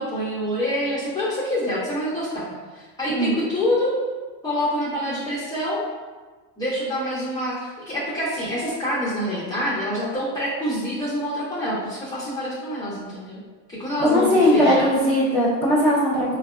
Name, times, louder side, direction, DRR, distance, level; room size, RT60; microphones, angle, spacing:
voice 1, 0.0-3.9 4.4-5.8 6.6-13.4 13.7-15.0, equal, 10° left, -10 dB, 0.5 m, -26 dB
voice 2, 3.1-3.4 14.0-16.4, left 1 dB, 20° right, -11 dB, 0.8 m, -19 dB
4.6 x 2.2 x 2.4 m, 1.3 s
cardioid pair, 130°, 48 cm